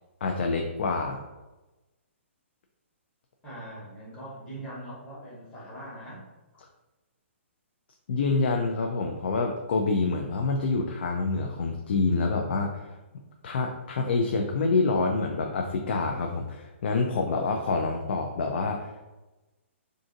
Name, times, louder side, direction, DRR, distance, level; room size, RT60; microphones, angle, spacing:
voice 1, 0.2-1.2 8.1-12.9 13.4-19.0, left 3 dB, 55° left, 2 dB, 0.4 m, -27 dB
voice 2, 3.4-6.2, right 1 dB, 10° left, -9 dB, 1.0 m, -41 dB
2.5 x 2.4 x 3.8 m, 1.1 s
hypercardioid pair, 170°, 7 cm